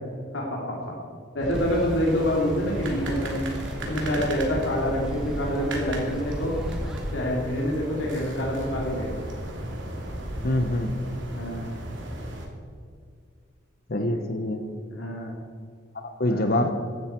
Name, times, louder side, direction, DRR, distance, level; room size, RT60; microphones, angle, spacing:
voice 1, 0.3-0.9 1.3-3.5 3.8-6.6 7.1-9.2 11.3-11.7 14.1-14.2 14.9-15.4 16.2-16.7, equal, 80° left, -3 dB, 2.8 m, -27 dB
sound 1, 1.4-7.1, equal, 5° right, 1.4 m, -38 dB
sound 2, 1.5-12.4, right 1 dB, 70° right, 2.8 m, -34 dB
voice 2, 10.4-11.0 13.9-14.6 15.9-16.7, left 1 dB, 50° left, 7 dB, 0.9 m, -25 dB
16.0 x 12.0 x 4.5 m, 2.2 s
head